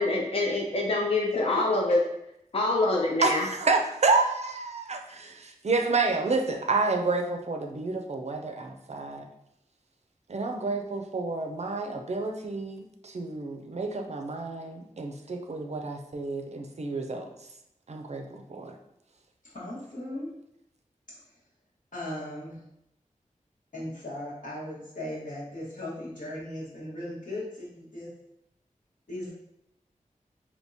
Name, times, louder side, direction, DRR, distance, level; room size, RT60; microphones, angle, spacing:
voice 1, 0.0-2.0 2.5-3.4, left 2 dB, 45° left, -1 dB, 0.5 m, -25 dB
voice 2, 3.2-9.3 10.3-17.3 17.9-18.8, right 3 dB, 55° right, 4 dB, 0.4 m, -29 dB
voice 3, 19.5-20.4 21.2-21.3 21.9-22.6 23.7-28.1 29.1-29.3, left 1 dB, 75° left, -7 dB, 1.4 m, -37 dB
3.5 x 2.8 x 2.7 m, 0.80 s
wide cardioid pair, 55°, 14 cm